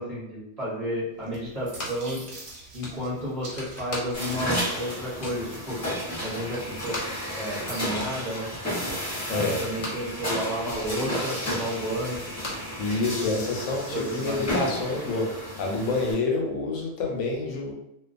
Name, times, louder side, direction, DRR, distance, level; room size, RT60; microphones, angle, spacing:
voice 1, 0.0-2.2 2.7-5.8 6.2-7.0 7.4-8.5 9.3-12.2 13.1-13.4 13.9-14.5, equal, 35° right, -9 dB, 0.7 m, -32 dB
sound 1, 1.2-6.0, right 2 dB, 60° right, 0.9 m, -46 dB
sound 2, 1.3-2.2 2.4-2.5 2.8-4.5 4.8-5.5 6.0-6.1 6.3-10.1 10.5-13.2, left 1 dB, 60° left, 0.3 m, -39 dB
sound 3, 4.1-16.1, equal, 15° left, 0.6 m, -32 dB
voice 2, 9.3-9.7 12.8-17.7, left 3 dB, 85° left, 0 dB, 1.0 m, -28 dB
2.4 x 2.2 x 2.4 m, 0.80 s
omnidirectional pair, 1.4 m